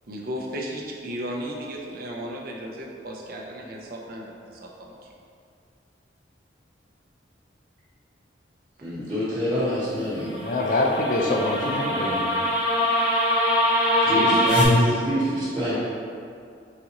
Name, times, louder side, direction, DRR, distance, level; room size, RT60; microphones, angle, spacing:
voice 1, 0.1-4.9 14.1-14.4, right 1 dB, 50° right, -1 dB, 0.6 m, -34 dB
voice 2, 8.8-10.3 14.0-15.7, equal, 25° right, -16 dB, 1.1 m, -26 dB
sound 1, 10.2-14.7, equal, 70° left, 1.1 m, -23 dB
voice 3, 10.4-12.5, left 2 dB, 50° left, 1 dB, 0.4 m, -25 dB
4.0 x 3.7 x 2.9 m, 2.4 s
head